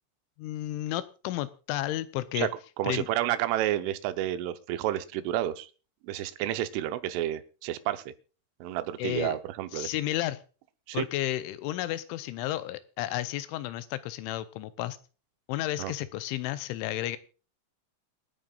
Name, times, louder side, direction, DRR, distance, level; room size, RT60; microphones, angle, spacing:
voice 1, 0.4-2.5 2.8-3.1 9.0-9.4 9.7-10.4 10.9-15.0 15.5-17.2, left 14 dB, 85° left, 13 dB, 3.1 m, -32 dB
voice 2, 2.8-5.7 6.0-8.0 8.6-9.9 10.9-11.1 15.8-15.9, right 13 dB, 85° right, 11 dB, 3.4 m, -30 dB
27.0 x 9.3 x 2.4 m, 0.36 s
omnidirectional pair, 5.6 m